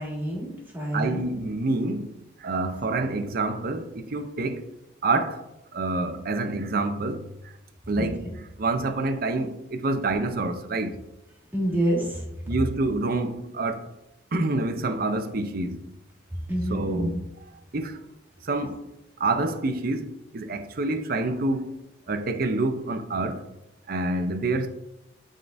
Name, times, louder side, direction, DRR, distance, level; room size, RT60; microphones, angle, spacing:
voice 1, 0.0-1.2 8.0-8.4 11.5-12.3 16.5-17.2, right 1 dB, 10° right, 1.9 m, -28 dB
voice 2, 0.9-4.7 5.0-5.5 5.7-7.5 7.9-11.0 12.5-13.9 14.3-15.8 16.7-17.1 17.7-18.0 18.4-18.8 19.2-21.8 22.1-23.4 23.9-24.7, right 2 dB, 55° right, 0.6 m, -27 dB
11.0 x 3.7 x 2.6 m
head